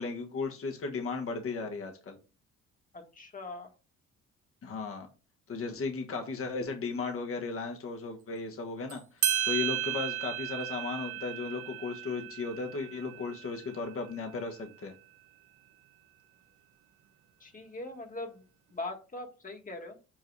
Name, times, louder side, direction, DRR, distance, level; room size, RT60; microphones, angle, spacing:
voice 1, 0.0-2.2 4.6-5.1 5.5-14.9, left 4 dB, 45° left, 3 dB, 1.4 m, -36 dB
voice 2, 2.9-3.7 17.4-18.4 18.7-20.0, left 2 dB, 25° left, 3 dB, 1.6 m, -41 dB
sound 1, 8.9-9.0 9.2-14.3, right 12 dB, 80° right, 1.0 m, -34 dB
7.7 x 2.7 x 4.6 m, 0.33 s
cardioid pair, 90°, 30 cm